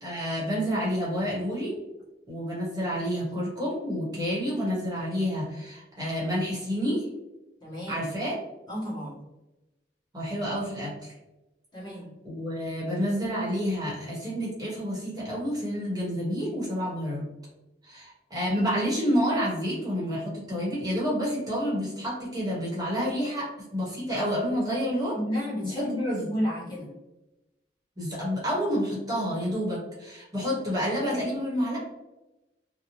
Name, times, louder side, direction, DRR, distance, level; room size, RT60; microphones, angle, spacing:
voice 1, 0.0-1.7 2.3-7.1 7.9-8.3 10.1-11.2 12.2-17.2 17.9-25.1 25.6-26.3 28.0-31.8, equal, 20° right, -6 dB, 0.9 m, -29 dB
voice 2, 7.6-8.0 8.7-9.2 11.7-12.1 25.1-26.9, equal, 25° left, -7 dB, 1.1 m, -32 dB
2.7 x 2.0 x 2.8 m, 0.99 s
head